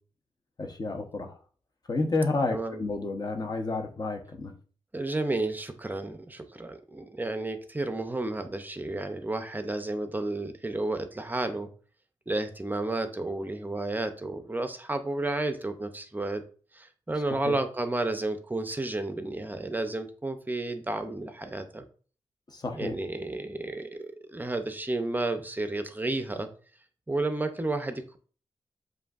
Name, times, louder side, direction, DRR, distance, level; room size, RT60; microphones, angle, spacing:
voice 1, 0.6-1.4 1.9-4.5 17.3-17.6 22.5-23.0, left 3 dB, 40° left, 5 dB, 0.8 m, -30 dB
voice 2, 4.9-11.7 12.3-16.4 16.7-21.9 22.7-26.5 27.1-28.2, right 2 dB, 15° right, 7 dB, 0.5 m, -32 dB
7.6 x 2.6 x 2.4 m, 0.41 s
wide cardioid pair, 115°, 10 cm